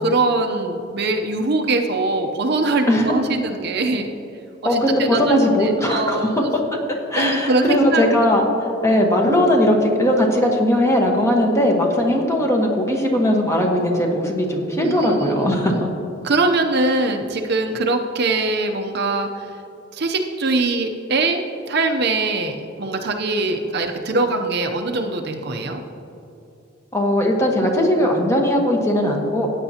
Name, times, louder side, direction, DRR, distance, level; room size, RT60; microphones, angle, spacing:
voice 1, 0.0-4.1 4.6-6.5 7.2-8.0 8.9-9.0 14.8-15.8 16.2-19.5 19.9-25.8, right 2 dB, 60° right, 4 dB, 0.7 m, -22 dB
voice 2, 4.6-6.6 7.1-15.7 26.9-29.5, left 1 dB, 15° left, 0 dB, 1.2 m, -19 dB
15.0 x 9.0 x 2.9 m, 2.9 s
head